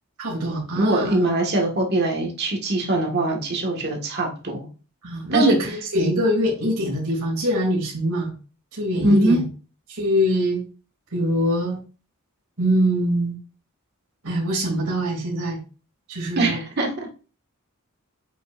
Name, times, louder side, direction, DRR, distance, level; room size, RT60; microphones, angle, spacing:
voice 1, 0.2-1.2 5.0-8.3 8.7-9.4 9.9-10.6 11.1-11.8 12.6-13.3 14.2-15.6 16.1-16.6, equal, 80° right, -3 dB, 2.8 m, -23 dB
voice 2, 0.7-4.7 5.3-5.6 9.0-9.4 16.4-16.9, right 2 dB, 50° right, 1 dB, 1.8 m, -22 dB
8.0 x 5.4 x 2.6 m, 0.36 s
head